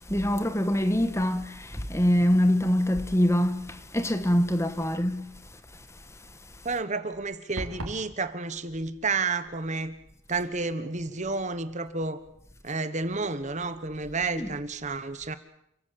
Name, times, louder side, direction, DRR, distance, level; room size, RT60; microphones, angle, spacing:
voice 1, 0.1-5.3 14.3-14.5, equal, 15° left, 1.4 m, -24 dB
voice 2, 6.6-9.9 10.3-12.2 12.6-15.4, right 3 dB, 35° right, 1.3 m, -31 dB
sound 1, 7.6-8.1, right 1 dB, 70° right, 4.4 m, -35 dB
29.0 x 16.0 x 8.8 m
head